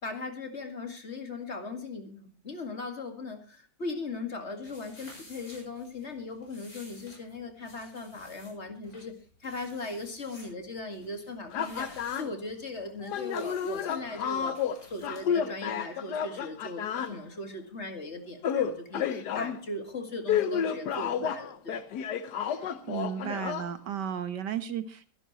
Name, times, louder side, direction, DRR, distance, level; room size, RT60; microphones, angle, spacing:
voice 1, 0.0-9.1 9.4-21.8, left 2 dB, 40° left, 5 dB, 2.3 m, -39 dB
sound 1, 4.6-15.2, left 1 dB, 60° left, 7.5 m, -54 dB
sound 2, 11.5-12.3 13.0-17.2 18.4-19.6 20.3-23.7, left 8 dB, 75° left, 1.5 m, -31 dB
voice 2, 22.5-25.1, right 8 dB, 85° right, 11 dB, 1.8 m, -34 dB
23.5 x 11.5 x 3.1 m, 0.36 s
omnidirectional pair, 1.8 m